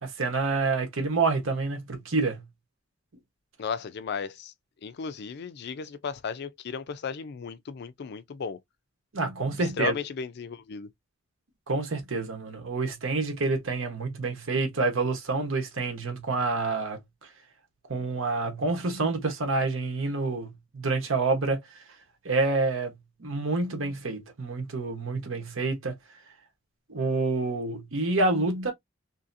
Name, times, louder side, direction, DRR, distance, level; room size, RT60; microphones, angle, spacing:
voice 1, 0.0-2.4 9.1-9.9 11.7-17.0 17.9-21.6 22.2-26.0 26.9-28.7, right 3 dB, 85° right, 1.1 m, -28 dB
voice 2, 3.6-4.5 4.8-8.6 9.5-10.9, left 6 dB, 55° left, 0.4 m, -35 dB
2.8 x 2.7 x 2.6 m
head